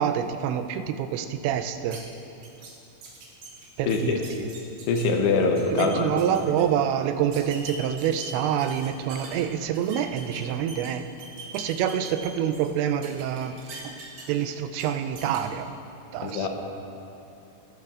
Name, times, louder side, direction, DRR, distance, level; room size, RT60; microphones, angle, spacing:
voice 1, 0.0-2.0 3.8-4.5 5.7-11.1 11.5-15.7 16.1-16.5, right 9 dB, 85° right, 8 dB, 2.8 m, -27 dB
flamingo glass speedmarker, 1.9-2.0 2.4-2.7 3.0-5.1 5.4-5.9 6.2-6.6 7.3-9.4 9.7-10.9 11.2-12.7 13.0-14.4 14.8-14.9 15.2-15.4, right 3 dB, 65° right, 3.4 m, -42 dB
voice 2, 3.9-4.2 4.9-6.1 16.2-16.5, left 4 dB, 75° left, 3 dB, 2.7 m, -23 dB
18.5 x 11.5 x 2.4 m, 2.8 s
omnidirectional pair, 5.1 m